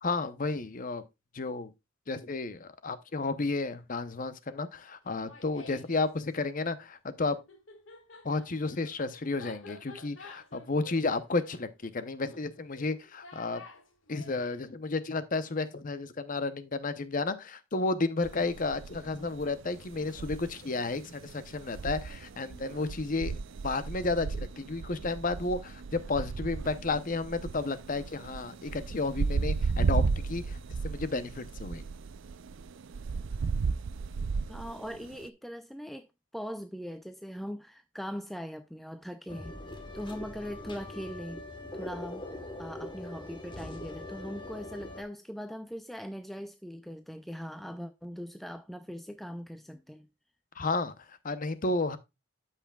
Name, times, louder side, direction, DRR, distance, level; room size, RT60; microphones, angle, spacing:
voice 1, 0.0-1.0 1.3-1.7 2.1-7.4 8.2-13.6 14.1-23.3 23.6-30.6 30.8-31.8 50.6-52.0, left 3 dB, 40° left, 0.7 m, -32 dB
Laughter, 5.0-6.1 7.3-14.6, left 3 dB, 75° left, 1.8 m, -51 dB
sound 1, 18.2-35.3, right 4 dB, 70° right, 0.4 m, -34 dB
voice 2, 34.5-36.1 36.3-39.6 39.9-41.4 41.7-50.1, equal, ahead, 0.4 m, -40 dB
sound 2, 39.3-45.0, left 1 dB, 25° left, 1.2 m, -42 dB
13.0 x 5.8 x 2.3 m
head